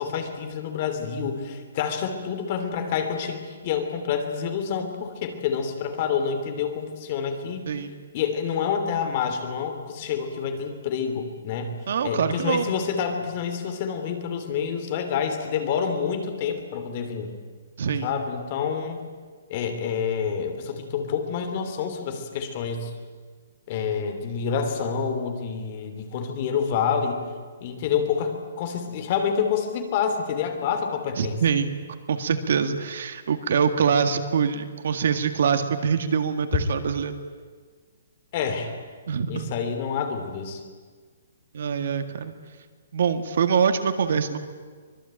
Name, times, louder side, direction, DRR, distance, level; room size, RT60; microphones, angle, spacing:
voice 1, 0.0-7.7 8.1-11.7 12.0-17.3 18.0-19.0 19.5-22.9 23.7-27.2 27.6-28.3 28.6-31.4 38.3-38.7 39.3-40.6, left 7 dB, 30° left, 6 dB, 3.0 m, -28 dB
voice 2, 11.9-12.7 17.8-18.1 31.2-31.7 32.1-37.1 39.1-39.5 41.5-42.3 42.9-44.4, right 6 dB, 50° right, 8 dB, 1.8 m, -24 dB
24.5 x 21.5 x 9.0 m, 1.5 s
hypercardioid pair, 175°, 0 cm